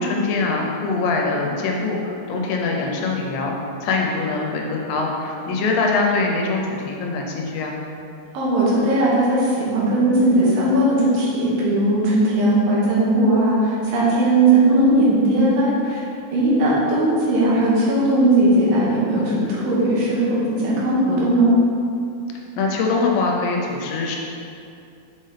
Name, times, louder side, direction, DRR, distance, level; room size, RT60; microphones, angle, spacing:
voice 1, 0.0-7.8 22.6-24.2, left 3 dB, 80° left, 0 dB, 2.4 m, -23 dB
voice 2, 8.3-16.0 16.3-21.5, right 1 dB, 80° right, -6 dB, 2.9 m, -18 dB
5.9 x 5.5 x 3.3 m, 2.6 s
omnidirectional pair, 4.1 m